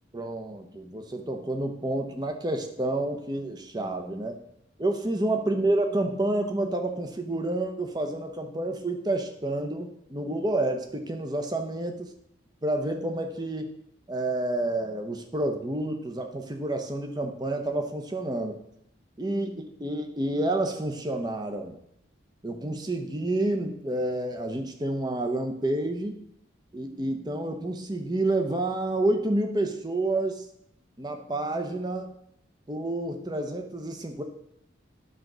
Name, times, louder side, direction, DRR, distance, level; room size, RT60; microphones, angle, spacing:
voice 1, 0.1-4.4 4.8-12.1 12.6-13.7 14.1-18.6 19.2-21.7 22.4-26.2 26.7-30.5 31.0-32.1 32.7-34.2, right 2 dB, 20° right, 5 dB, 0.8 m, -29 dB
10.0 x 3.9 x 6.1 m, 0.74 s
head